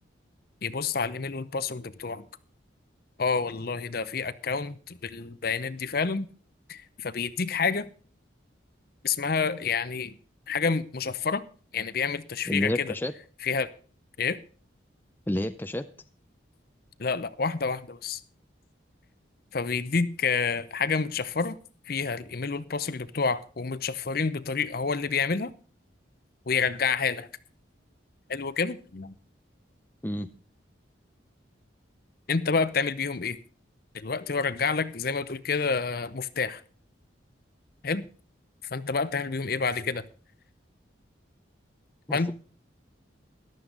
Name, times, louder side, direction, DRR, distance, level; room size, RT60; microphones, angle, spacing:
voice 1, 0.6-2.2 3.2-6.3 6.7-7.9 9.0-10.2 10.5-11.4 11.7-12.9 13.4-13.7 14.2-14.4 17.0-18.2 19.5-21.6 21.9-25.5 26.5-27.3 28.3-29.1 32.3-33.4 33.9-36.6 37.8-38.0 38.7-40.0 42.1-42.3, left 5 dB, 50° left, 0.7 m, -28 dB
voice 2, 12.5-13.1 15.3-15.9 30.0-30.3 42.1-42.3, left 1 dB, 10° left, 0.5 m, -29 dB
14.0 x 11.5 x 3.9 m
head